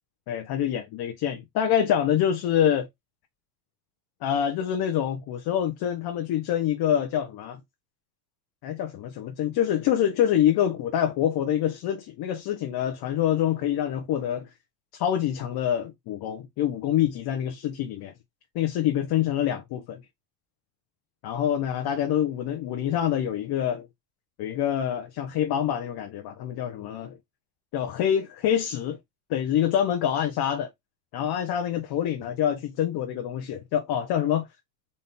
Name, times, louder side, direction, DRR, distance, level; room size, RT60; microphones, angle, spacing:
voice 1, 0.3-2.9 4.2-7.6 8.6-14.5 14.9-18.1 18.5-20.0 21.2-23.9 24.4-27.2 27.7-29.0 29.3-30.7 31.1-34.5, left 10 dB, 50° left, 0.9 m, -26 dB
4.2 x 2.6 x 3.6 m
supercardioid pair, 125°, 49 cm